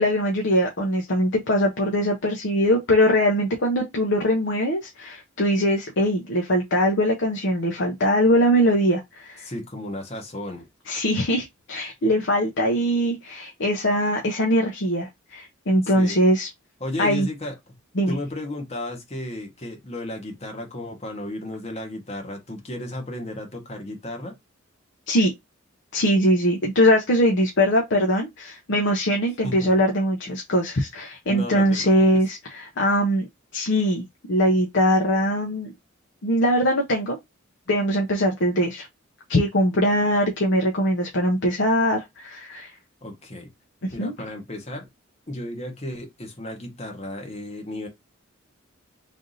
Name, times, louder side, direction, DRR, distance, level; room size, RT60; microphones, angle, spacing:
voice 1, 0.0-9.5 10.9-16.5 17.0-17.3 18.0-18.2 25.1-25.3 25.9-33.2 33.5-35.7 36.2-37.2 37.7-38.9 39.3-42.7 43.8-44.1, equal, 65° left, 0.8 m, -21 dB
voice 2, 9.4-10.7 15.8-16.2 16.8-17.5 18.1-24.4 29.4-29.7 30.3-30.4 31.3-32.2 43.0-43.5 43.9-44.9 45.3-47.9, left 1 dB, 35° left, 1.2 m, -34 dB
3.4 x 2.7 x 3.9 m
head